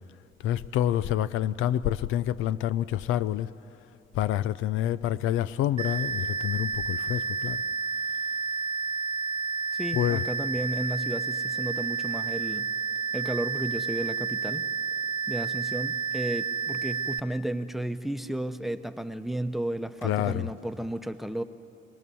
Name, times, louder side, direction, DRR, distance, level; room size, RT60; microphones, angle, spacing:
voice 1, 0.4-3.5 4.1-7.6 9.9-10.2 20.0-20.5, left 12 dB, 90° left, 0.5 m, -27 dB
sound 1, 5.8-17.2, right 5 dB, 25° right, 0.5 m, -30 dB
voice 2, 9.7-12.7 13.1-14.7 15.3-21.4, right 1 dB, ahead, 0.8 m, -33 dB
25.5 x 18.5 x 7.0 m
cardioid pair, 90°, 20 cm